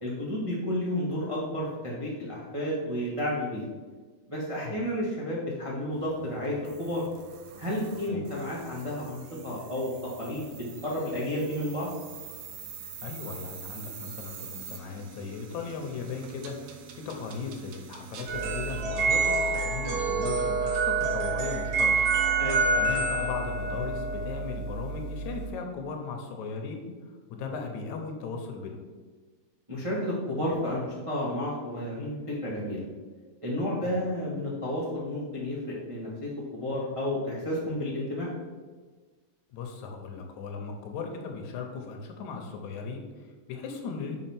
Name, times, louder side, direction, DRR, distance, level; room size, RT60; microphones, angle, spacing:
voice 1, 0.0-3.6 4.3-7.0 7.6-9.9 10.2-10.5 10.8-11.9 22.4-22.6 29.7-32.8 33.4-38.3, left 1 dB, 30° right, -6 dB, 0.5 m, -31 dB
sound 1, 5.9-18.8, right 8 dB, 70° right, 1.6 m, -46 dB
voice 2, 13.0-21.9 22.8-26.8 27.3-28.8 33.8-34.0 39.5-44.2, left 5 dB, 75° left, 3 dB, 2.1 m, -37 dB
sound 2, 18.3-25.5, right 3 dB, 50° right, 2.6 m, -27 dB
5.5 x 5.0 x 5.9 m, 1.4 s
omnidirectional pair, 3.6 m